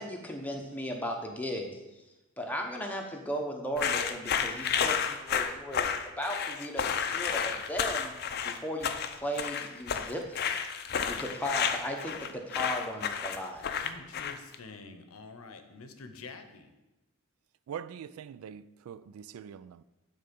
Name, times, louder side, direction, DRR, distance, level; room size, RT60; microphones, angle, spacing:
voice 1, 0.0-1.8 2.4-8.1 8.4-10.4 11.1-13.7, equal, 5° left, 1 dB, 0.8 m, -36 dB
sound 1, 3.8-14.5, left 7 dB, 45° left, 0.5 m, -31 dB
voice 2, 13.8-16.7, left 4 dB, 75° left, 8 dB, 0.8 m, -47 dB
voice 3, 17.7-19.8, right 8 dB, 75° right, 17 dB, 0.3 m, -43 dB
9.1 x 3.9 x 5.2 m, 1.0 s
head